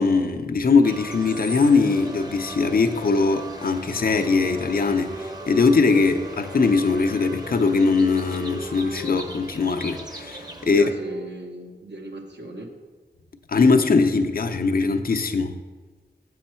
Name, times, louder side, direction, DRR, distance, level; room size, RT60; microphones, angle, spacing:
voice 1, 0.0-10.8 13.5-15.6, left 4 dB, 55° left, 6 dB, 0.5 m, -21 dB
sound 1, 0.8-10.7, right 1 dB, 20° right, 0.7 m, -39 dB
Wind instrument woodwind instrument, 2.9-6.6 6.9-11.3, right 1 dB, 45° right, 0.9 m, -42 dB
voice 2, 10.6-12.7, right 1 dB, 75° right, 3 dB, 1.0 m, -36 dB
7.5 x 6.3 x 4.3 m, 1.3 s
wide cardioid pair, 85°, 18 cm